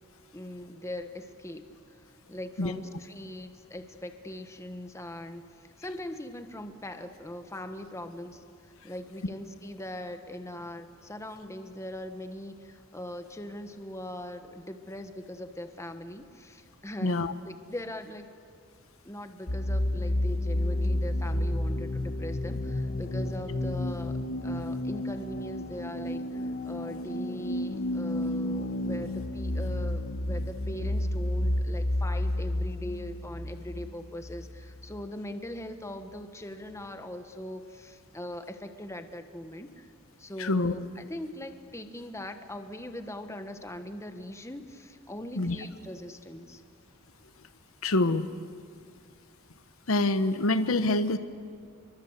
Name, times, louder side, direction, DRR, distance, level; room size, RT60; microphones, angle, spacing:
voice 1, 0.3-1.6 2.3-8.4 8.8-18.3 19.0-39.9 40.2-46.6, left 1 dB, 15° left, 8 dB, 1.3 m, -41 dB
voice 2, 17.0-17.3 40.4-40.7 45.4-45.6 47.8-48.3 49.9-51.2, left 2 dB, 70° left, 11 dB, 1.0 m, -25 dB
sound 1, 19.5-35.0, left 1 dB, 50° left, 1.3 m, -31 dB
28.5 x 23.0 x 8.2 m, 2.2 s
head